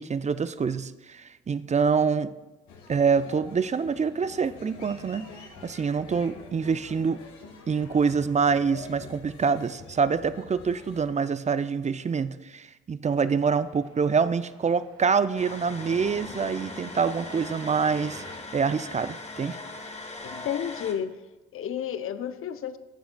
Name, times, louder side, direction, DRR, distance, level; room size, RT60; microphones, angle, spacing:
voice 1, 0.0-2.3 2.9-5.3 5.6-7.2 7.7-18.2 18.5-19.6, right 5 dB, 25° right, 14 dB, 0.5 m, -26 dB
sound 1, 2.7-11.0, left 4 dB, 75° left, 1.4 m, -47 dB
sound 2, 13.2-18.4, right 4 dB, 75° right, 1.3 m, -51 dB
sound 3, 15.4-20.9, left 2 dB, 20° left, 1.3 m, -40 dB
voice 2, 20.2-21.2 21.5-22.8, left 9 dB, 45° left, 12 dB, 0.6 m, -31 dB
15.0 x 7.0 x 2.3 m, 1.1 s
hypercardioid pair, 50°, 29 cm